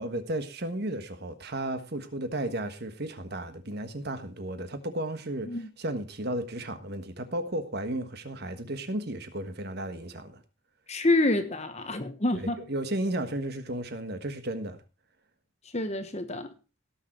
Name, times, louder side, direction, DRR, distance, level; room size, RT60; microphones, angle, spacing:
voice 1, 0.0-10.4 12.3-14.8, right 1 dB, 50° right, 1.4 m, -34 dB
voice 2, 10.9-12.6 15.7-16.5, left 2 dB, 30° left, 1.1 m, -27 dB
17.0 x 6.5 x 4.4 m
head